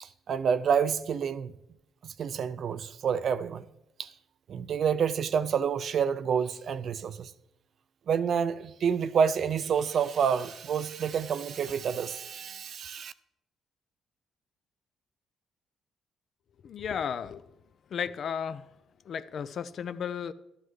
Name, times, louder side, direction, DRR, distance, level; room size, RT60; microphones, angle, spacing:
voice 1, 0.0-1.5 2.0-3.6 4.0-4.1 4.5-7.3 8.1-13.1, right 7 dB, 60° right, 0.4 m, -28 dB
voice 2, 16.6-17.5 17.9-18.7 19.1-20.3, left 7 dB, 60° left, 0.4 m, -34 dB
12.0 x 11.5 x 3.2 m
cardioid pair, 90°, 0 cm